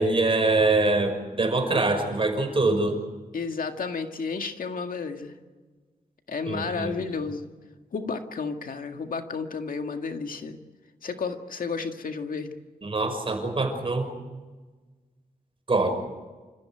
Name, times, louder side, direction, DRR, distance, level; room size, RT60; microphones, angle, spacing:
voice 1, 0.0-3.0 6.5-6.9 12.8-14.1 15.7-15.9, right 2 dB, 35° right, 5 dB, 5.8 m, -24 dB
voice 2, 3.3-5.4 6.3-7.5 7.9-10.6 11.0-12.6, left 4 dB, 70° left, 5 dB, 2.0 m, -32 dB
29.0 x 15.0 x 9.0 m, 1.3 s
wide cardioid pair, 85°, 15 cm